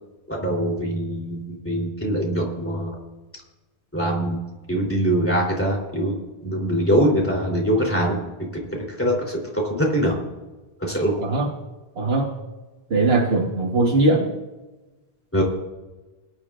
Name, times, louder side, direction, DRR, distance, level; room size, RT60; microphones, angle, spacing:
voice 1, 0.3-3.0 3.9-4.4 4.7-6.1 6.4-8.2 8.7-10.1 10.8-11.1 15.3-15.4, right 1 dB, 10° left, -2 dB, 3.1 m, -23 dB
voice 2, 12.0-12.3 12.9-14.3, right 2 dB, 75° right, 0 dB, 1.5 m, -20 dB
21.5 x 10.5 x 2.4 m, 1.1 s
omnidirectional pair, 1.0 m